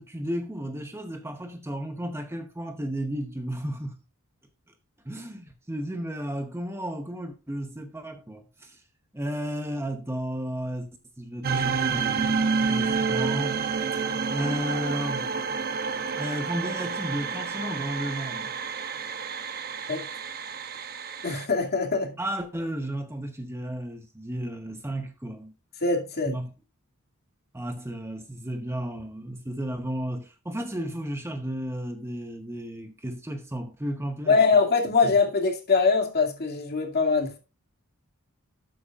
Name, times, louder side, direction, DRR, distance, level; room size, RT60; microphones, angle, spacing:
voice 1, 0.0-3.9 5.0-8.8 9.1-10.9 11.2-13.6 13.9-14.0 14.3-15.3 16.2-18.5 22.2-25.5 26.3-26.5 27.5-34.4 35.0-35.1, right 1 dB, 10° right, 0.9 m, -33 dB
sound 1, 11.4-21.5, right 5 dB, 45° right, 1.0 m, -29 dB
voice 2, 21.2-22.2 25.8-26.4 34.3-37.4, left 4 dB, 45° left, 2.4 m, -23 dB
13.0 x 8.3 x 2.4 m
head